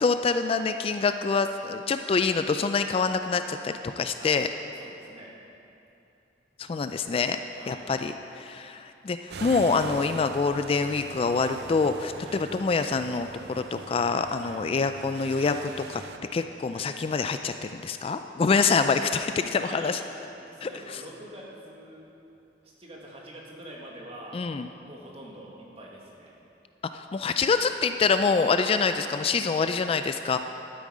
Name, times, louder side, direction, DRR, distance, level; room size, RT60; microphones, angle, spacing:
voice 1, 0.0-4.5 6.6-7.4 7.7-16.0 16.3-20.0 20.6-20.7 24.3-24.7 26.9-30.4, left 4 dB, 35° left, 8 dB, 0.3 m, -26 dB
voice 2, 4.7-5.3 7.5-7.9 12.2-12.4 14.4-14.6 16.7-16.8 19.6-20.0 20.3-22.1 22.6-24.4 24.8-26.3, right 1 dB, 35° right, -3 dB, 1.8 m, -45 dB
sound 1, 9.3-16.2, right 4 dB, 65° right, 0.5 m, -42 dB
12.0 x 9.4 x 4.9 m, 2.8 s
head